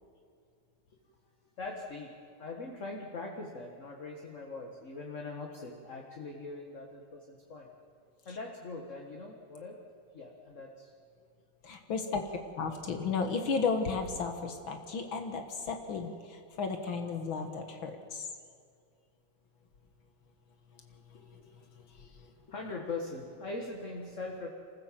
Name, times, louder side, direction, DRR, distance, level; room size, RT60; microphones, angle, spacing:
voice 1, 1.6-2.1 2.4-7.7 8.3-9.8 10.1-10.9 12.0-12.4 12.7-12.8 14.9-15.0 21.1-21.6 22.5-24.5, left 3 dB, 40° left, 1 dB, 1.9 m, -42 dB
voice 2, 11.6-12.2 12.6-16.1 16.6-18.3, left 5 dB, 70° left, 5 dB, 2.1 m, -33 dB
26.0 x 15.5 x 7.5 m, 2.3 s
omnidirectional pair, 2.2 m